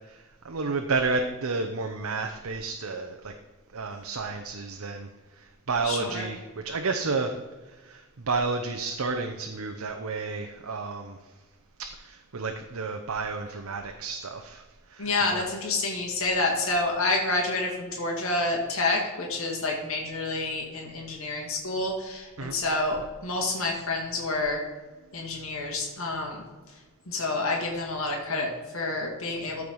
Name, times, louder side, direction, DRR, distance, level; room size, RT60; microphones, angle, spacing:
voice 1, 0.1-3.3 3.7-5.1 5.4-6.4 6.6-7.3 7.8-11.2 11.8-15.5 22.4-22.5, right 4 dB, 80° right, 4 dB, 0.8 m, -31 dB
voice 2, 5.8-6.3 15.0-24.6 25.1-26.8 27.1-29.6, left 2 dB, 70° left, 0 dB, 2.0 m, -28 dB
13.5 x 4.8 x 5.4 m, 1.3 s
head